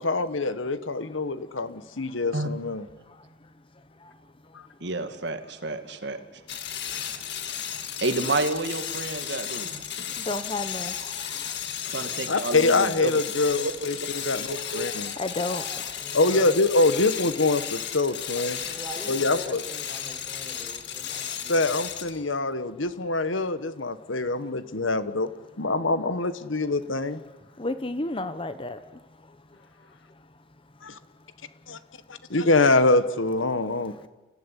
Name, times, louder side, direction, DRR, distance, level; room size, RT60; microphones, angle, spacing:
voice 1, 0.0-2.8 12.3-15.1 16.1-18.6 19.1-19.6 21.5-25.3 25.6-27.2 30.8-31.0 31.7-31.8 32.3-34.1, left 3 dB, 90° left, 13 dB, 1.4 m, -24 dB
voice 2, 4.8-6.2 8.0-9.9 11.9-13.2 13.6-13.7 14.2-14.9, right 2 dB, 60° right, 8 dB, 2.1 m, -30 dB
sound 1, 6.5-22.2, left 9 dB, 60° left, 2.2 m, -34 dB
voice 3, 10.2-11.6 14.6-16.2 27.6-28.8, left 2 dB, 30° left, 11 dB, 0.9 m, -33 dB
voice 4, 16.0-16.6 18.7-21.7, right 1 dB, 15° right, 3 dB, 5.0 m, -43 dB
30.0 x 17.0 x 10.0 m, 1.2 s
head